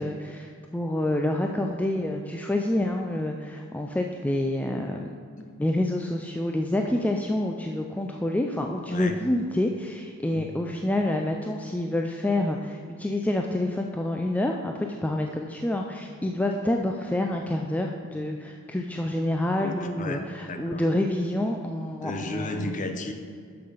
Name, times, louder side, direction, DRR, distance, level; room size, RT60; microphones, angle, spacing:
voice 1, 0.0-5.1 5.6-22.7, left 1 dB, 5° left, 2 dB, 0.3 m, -28 dB
voice 2, 5.4-5.7 8.9-9.2 10.3-10.5 19.6-20.8 22.0-23.1, left 2 dB, 35° left, 6 dB, 0.7 m, -34 dB
7.1 x 6.8 x 5.5 m, 2.2 s
head